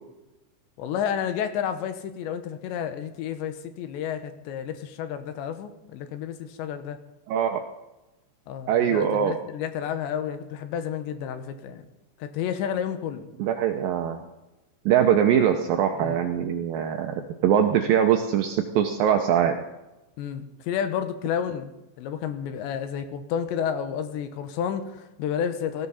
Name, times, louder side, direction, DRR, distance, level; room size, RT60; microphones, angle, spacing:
voice 1, 0.8-7.0 8.5-11.9 12.2-13.3 15.9-16.2 20.2-21.7 22.0-25.9, left 8 dB, 80° left, 9 dB, 3.3 m, -31 dB
voice 2, 7.3-7.6 8.7-9.3 13.4-14.2 14.9-19.6, right 9 dB, 85° right, 4 dB, 2.0 m, -22 dB
18.5 x 14.5 x 4.2 m, 0.99 s
omnidirectional pair, 5.2 m